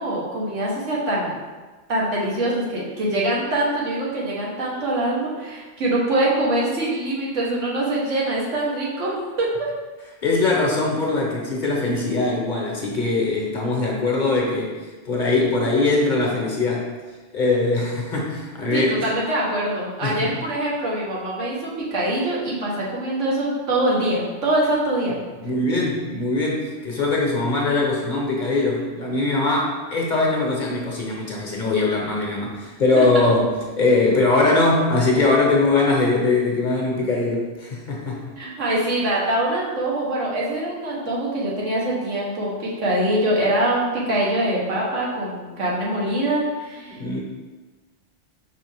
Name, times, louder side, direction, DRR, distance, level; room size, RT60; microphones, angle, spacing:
voice 1, 0.0-1.3 1.9-9.1 9.4-9.5 18.7-25.2 33.0-33.1 38.4-47.0, right 1 dB, 85° right, -5 dB, 1.5 m, -24 dB
voice 2, 10.2-14.7 15.0-16.9 17.3-19.0 20.0-20.3 25.4-38.2 46.8-47.2, left 3 dB, 45° left, -2 dB, 0.8 m, -21 dB
4.9 x 3.3 x 3.3 m, 1.3 s
omnidirectional pair, 1.2 m